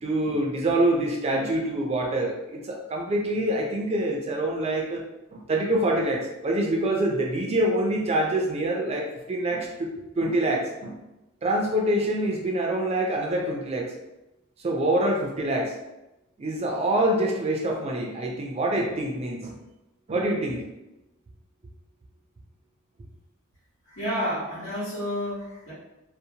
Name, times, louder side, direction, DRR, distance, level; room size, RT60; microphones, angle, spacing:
voice 1, 0.0-5.0 5.3-9.9 10.2-10.9 11.4-13.9 14.6-15.7 16.4-19.6 20.1-20.6, right 1 dB, 30° right, 0 dB, 0.3 m, -25 dB
voice 2, 23.9-25.7, equal, 85° left, -11 dB, 1.2 m, -30 dB
2.6 x 2.0 x 2.7 m, 0.96 s
head